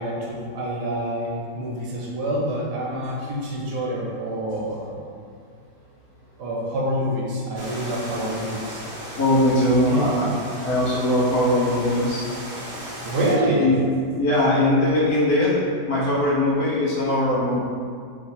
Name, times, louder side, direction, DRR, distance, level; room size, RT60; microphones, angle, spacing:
voice 1, 0.0-4.9 6.4-8.8 9.9-10.1 13.0-13.7, right 1 dB, 75° right, -4 dB, 1.3 m, -26 dB
sound 1, 7.6-13.3, equal, 50° right, 0.6 m, -36 dB
voice 2, 9.2-10.3 10.6-12.2 13.6-13.7 14.2-15.5 15.9-17.6, left 1 dB, 60° left, -6 dB, 1.3 m, -20 dB
3.2 x 3.2 x 4.2 m, 2.1 s
omnidirectional pair, 1.9 m